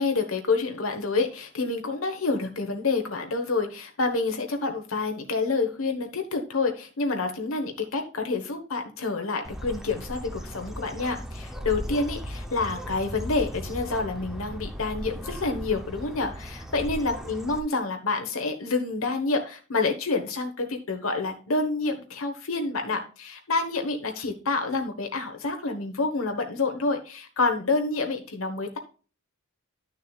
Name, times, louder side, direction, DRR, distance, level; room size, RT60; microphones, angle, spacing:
voice 1, 0.0-28.8, left 3 dB, 75° left, 4 dB, 1.2 m, -28 dB
Bird, 9.4-17.6, equal, ahead, 0.8 m, -37 dB
11.0 x 6.6 x 2.4 m, 0.36 s
head